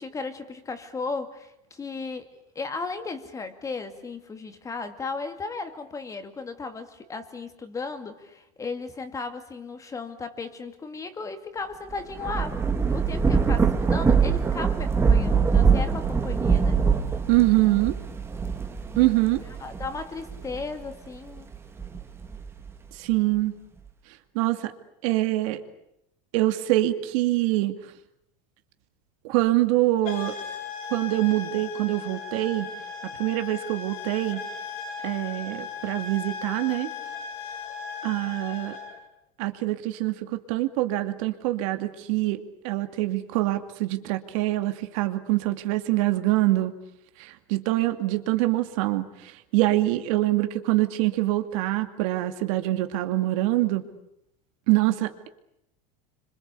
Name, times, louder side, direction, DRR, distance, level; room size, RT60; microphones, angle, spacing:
voice 1, 0.0-2.3 2.6-16.8 19.6-21.5, left 4 dB, 20° left, 8 dB, 2.3 m, -35 dB
Thunder / Rain, 11.9-20.8 21.4-22.7, right 5 dB, 15° right, 2.0 m, -23 dB
voice 2, 17.3-18.0 19.0-19.4 23.0-23.5 24.3-24.7 25.0-25.6 26.3-27.8 29.2-30.4 30.9-32.7 33.2-34.4 35.0-36.9 38.0-38.8 39.4-46.7 47.2-53.8 54.7-55.3, right 17 dB, 70° right, 8 dB, 2.5 m, -24 dB
sound 1, 30.0-39.0, left 6 dB, 80° left, 5.7 m, -37 dB
27.5 x 25.5 x 8.4 m, 0.81 s
supercardioid pair, 145°, 18 cm